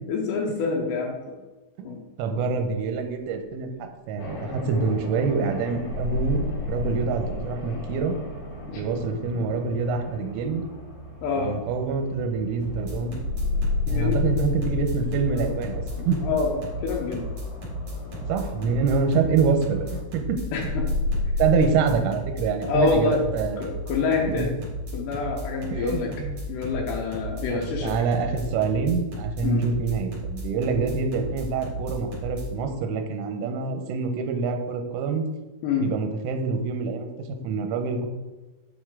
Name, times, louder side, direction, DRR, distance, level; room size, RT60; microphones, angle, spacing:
voice 1, 0.1-1.4 1.8-2.0 8.7-8.8 11.2-11.5 13.9-14.3 15.3-15.6 16.0-17.3 20.5-20.9 22.6-23.2 23.6-24.5 24.9-26.1 26.5-27.9 29.4-29.6 35.6-35.9, left 4 dB, 80° left, -1 dB, 2.5 m, -27 dB
voice 2, 2.2-3.7 4.1-8.1 8.7-10.6 11.4-13.2 13.9-16.2 18.3-20.4 21.4-23.7 24.3-24.5 25.7-26.4 27.5-35.3 35.8-37.1 37.4-38.1, right 5 dB, 85° right, 5 dB, 3.2 m, -26 dB
sound 1, 4.2-20.0, left 1 dB, 60° left, 3.2 m, -41 dB
sound 2, 5.7-10.5 13.1-18.2 20.5-21.7, left 3 dB, 70° right, 2.8 m, -30 dB
sound 3, 12.6-32.4, right 1 dB, 45° right, 2.8 m, -34 dB
7.8 x 5.3 x 3.6 m, 1.1 s
omnidirectional pair, 5.8 m